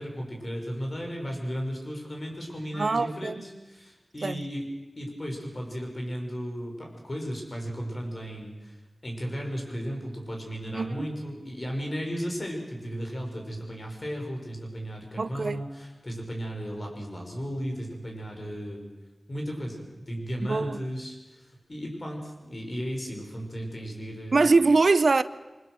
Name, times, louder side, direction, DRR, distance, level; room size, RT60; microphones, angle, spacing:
voice 1, 0.0-4.7 5.0-8.8 9.0-18.8 19.3-24.5, equal, 45° left, 6.2 m, -35 dB
voice 2, 2.7-3.4 4.2-4.4 10.7-11.1 15.2-15.6 20.5-20.8 24.3-25.2, right 3 dB, 70° right, 0.6 m, -23 dB
24.5 x 20.5 x 6.4 m
wide cardioid pair, 55°, 0 cm